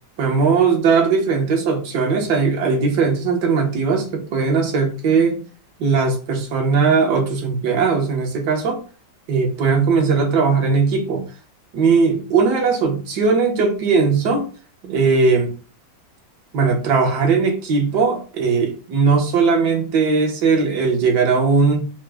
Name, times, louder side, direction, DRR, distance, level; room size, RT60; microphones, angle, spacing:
voice 1, 0.2-5.4 5.8-8.8 9.3-11.3 11.7-14.5 14.8-15.5 16.5-21.9, right 5 dB, 70° right, 2 dB, 1.4 m, -18 dB
4.6 x 2.0 x 3.3 m, 0.38 s
omnidirectional pair, 1.9 m